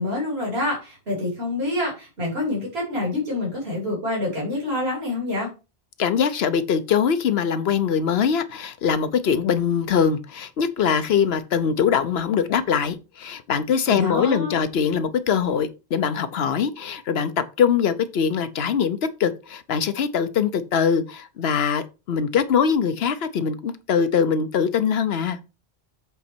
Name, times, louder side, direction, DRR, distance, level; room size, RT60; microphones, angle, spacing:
voice 1, 0.0-5.5 13.9-14.6, left 2 dB, 75° right, 3.2 m, -27 dB
voice 2, 6.0-25.4, left 7 dB, 75° left, 1.0 m, -22 dB
7.9 x 4.2 x 4.4 m
omnidirectional pair, 1.1 m